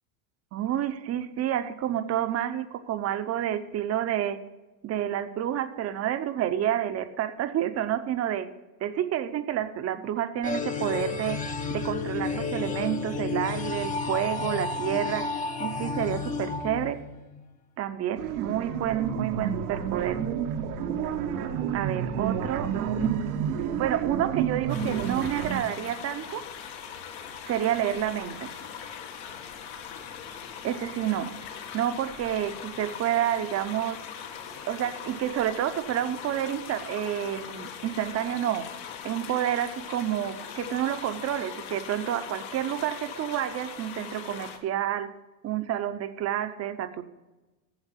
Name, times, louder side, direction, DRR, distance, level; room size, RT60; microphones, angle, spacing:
voice 1, 0.5-4.4 4.8-8.5 8.8-11.4 11.7-15.3 15.6-17.0 17.8-20.2 21.7-23.5 23.8-26.4 27.5-28.5 30.6-31.3 31.7-34.0 34.7-38.7 39.0-45.1 45.4-47.0, right 11 dB, 35° right, 11 dB, 0.7 m, -29 dB
sound 1, 10.4-17.4, left 4 dB, 20° left, 0.7 m, -32 dB
sound 2, 18.2-25.6, right 8 dB, 80° right, 1.1 m, -30 dB
sound 3, 24.7-44.6, left 8 dB, 65° left, 1.5 m, -41 dB
8.0 x 7.1 x 7.3 m, 1.1 s
supercardioid pair, 115°, 44 cm